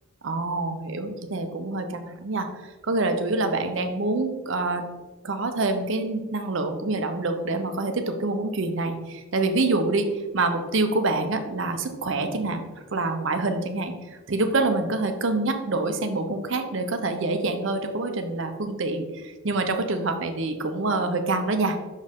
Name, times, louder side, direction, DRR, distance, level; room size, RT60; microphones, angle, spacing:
voice 1, 0.2-4.8 5.2-12.6 12.9-21.8, right 2 dB, 55° right, 7 dB, 0.6 m, -26 dB
6.1 x 4.4 x 3.6 m, 1.2 s
head